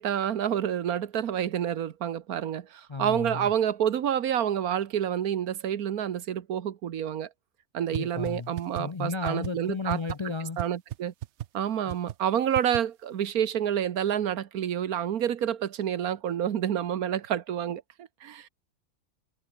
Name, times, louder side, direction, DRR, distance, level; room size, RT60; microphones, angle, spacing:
voice 1, 0.0-7.3 7.7-10.0 10.6-11.1 11.5-18.5, right 9 dB, 85° right, 1.5 m, -28 dB
voice 2, 2.9-3.5 7.9-10.6 11.9-12.0, left 4 dB, 35° left, 0.4 m, -34 dB
sound 1, 7.9-8.0 8.3-8.4 8.6-8.8 9.2-9.5 9.9-10.1 10.6-10.7 10.9-11.0 11.2-11.5 11.9-12.1 12.5-12.8, right 12 dB, 60° right, 0.8 m, -33 dB
omnidirectional pair, 1.5 m